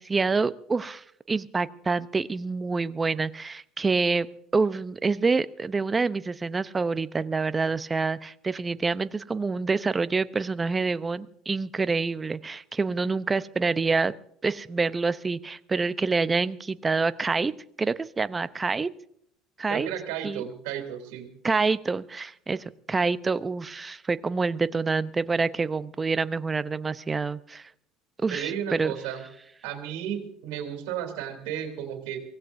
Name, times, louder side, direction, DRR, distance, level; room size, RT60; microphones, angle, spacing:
voice 1, 0.0-4.3 4.5-14.1 14.4-17.5 17.8-18.9 19.6-19.9 20.2-20.4 21.4-27.7 28.2-28.9, right 4 dB, 25° right, 15 dB, 0.7 m, -27 dB
voice 2, 19.7-21.3 28.3-29.2 29.6-32.2, right 9 dB, 75° right, 5 dB, 3.0 m, -33 dB
24.0 x 17.0 x 2.7 m, 0.70 s
hypercardioid pair, 75°, 0 cm